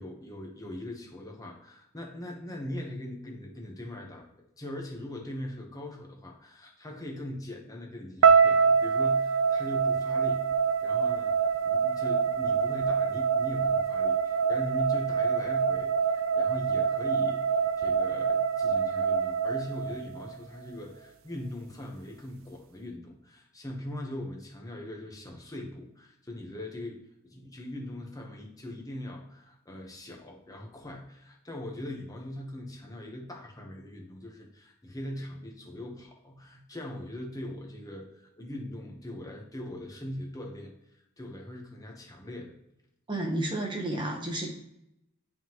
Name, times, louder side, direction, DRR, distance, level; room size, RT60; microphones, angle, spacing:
voice 1, 0.0-4.3 4.6-10.4 10.8-27.0 27.2-40.7 41.2-42.5, left 1 dB, 15° left, 0 dB, 1.0 m, -40 dB
sound 1, 8.2-20.4, right 6 dB, 70° right, 0.4 m, -25 dB
voice 2, 43.1-44.5, right 1 dB, 25° right, 1 dB, 1.0 m, -31 dB
9.9 x 3.7 x 3.0 m, 0.82 s
head